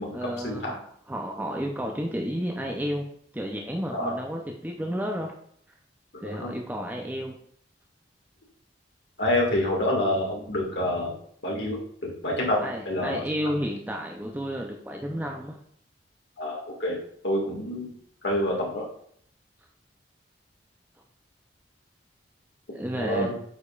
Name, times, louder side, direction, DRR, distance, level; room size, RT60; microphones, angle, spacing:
voice 1, 0.1-3.1 3.3-5.3 6.2-7.3 12.6-15.6 22.7-23.3, equal, 10° right, 1 dB, 0.5 m, -31 dB
voice 2, 6.1-6.5 9.2-11.1 11.4-13.2 16.4-17.0 17.2-17.9 18.2-18.9 23.0-23.3, left 1 dB, 65° left, -2 dB, 1.8 m, -27 dB
8.3 x 5.1 x 2.4 m, 0.65 s
head